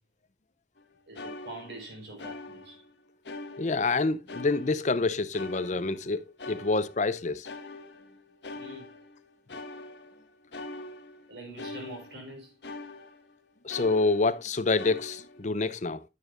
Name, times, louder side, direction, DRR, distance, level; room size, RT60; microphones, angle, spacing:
sound 1, 0.8-0.9 1.1-2.9 3.2-4.0 4.3-7.1 7.4-13.4 13.7-14.5 14.8-15.5, left 2 dB, 85° left, 1.5 m, -43 dB
voice 1, 1.1-2.8 8.5-9.0 11.3-12.6, right 1 dB, 75° right, 4.9 m, -44 dB
voice 2, 3.6-7.5 13.6-16.0, left 3 dB, 45° left, 0.7 m, -27 dB
9.4 x 9.2 x 2.5 m
head